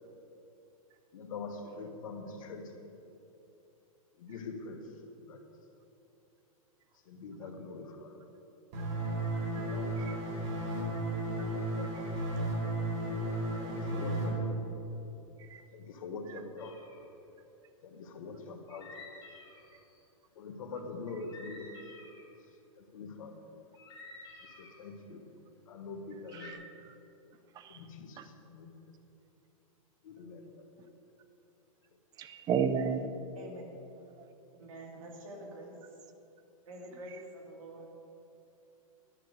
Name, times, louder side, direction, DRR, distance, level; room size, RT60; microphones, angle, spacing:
voice 1, 1.1-2.9 4.2-5.4 7.0-8.2 9.5-10.2 11.5-12.0 12.3-12.5 13.6-14.7 15.7-16.8 17.8-19.3 20.3-21.8 22.8-23.4 24.4-25.2 25.7-26.6 27.7-28.9 30.0-30.7, left 4 dB, 70° left, 4 dB, 1.5 m, -44 dB
sound 1, 8.7-14.3, right 1 dB, 50° right, 2.5 m, -34 dB
sound 2, 16.6-17.0 18.7-20.0 21.2-22.2 23.7-24.8 26.3-26.5, left 2 dB, 25° left, 2.7 m, -51 dB
voice 2, 32.2-33.0, right 7 dB, 20° right, 10 dB, 0.6 m, -31 dB
voice 3, 33.3-33.8 34.5-35.8 36.7-37.9, right 1 dB, 70° right, 0 dB, 2.6 m, -46 dB
11.0 x 6.5 x 8.0 m, 2.8 s
hypercardioid pair, 145°, 18 cm